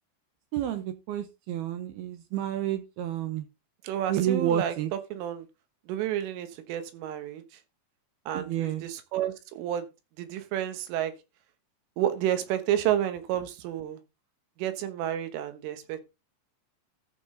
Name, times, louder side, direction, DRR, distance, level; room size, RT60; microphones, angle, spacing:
voice 1, 0.5-3.5 4.1-4.9 8.3-8.9, right 11 dB, 75° right, 2.4 m, -30 dB
voice 2, 3.8-4.8 5.1-5.5 5.9-7.4 8.3-9.9 10.2-11.1 12.0-14.0 14.6-16.0, right 11 dB, 90° right, 3.8 m, -30 dB
14.0 x 6.1 x 3.8 m
omnidirectional pair, 5.5 m